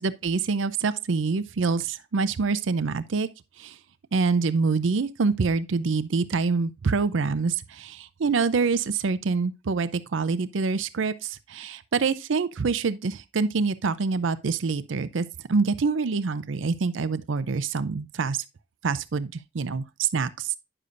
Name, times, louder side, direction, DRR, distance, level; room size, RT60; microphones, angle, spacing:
voice 1, 0.0-3.3 3.6-3.8 4.1-18.4 18.8-20.6, right 4 dB, 80° right, 0.5 m, -26 dB
9.8 x 6.7 x 2.5 m
head